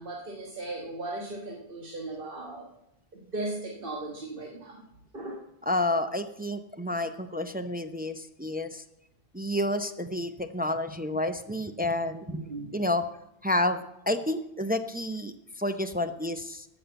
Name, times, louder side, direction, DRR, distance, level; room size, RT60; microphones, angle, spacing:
voice 1, 0.0-2.7 3.1-4.8 5.1-5.4 12.3-12.8, right 2 dB, 55° right, -2 dB, 1.7 m, -37 dB
voice 2, 5.6-8.8 9.3-12.4 12.7-13.0 13.4-16.7, left 1 dB, 10° right, 7 dB, 0.4 m, -30 dB
13.0 x 6.1 x 7.9 m, 0.85 s
omnidirectional pair, 1.1 m